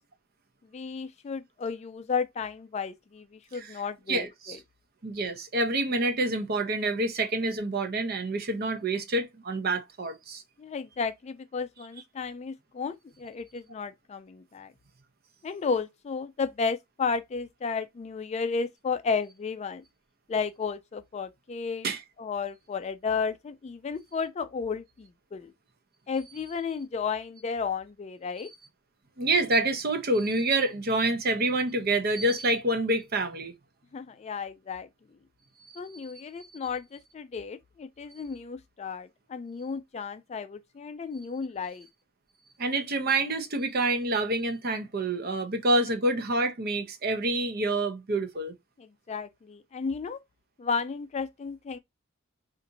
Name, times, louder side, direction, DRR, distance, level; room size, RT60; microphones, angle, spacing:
voice 1, 0.7-4.6 10.6-14.7 15.4-19.8 20.3-21.9 22.2-25.5 26.1-28.5 33.9-34.9 35.8-41.9 48.8-50.2 50.6-51.8, left 5 dB, 30° left, 0.3 m, -33 dB
voice 2, 4.1-4.6 5.0-10.4 21.8-22.0 29.2-33.5 42.6-48.5, right 2 dB, 50° right, 0.7 m, -27 dB
4.0 x 2.5 x 2.6 m
head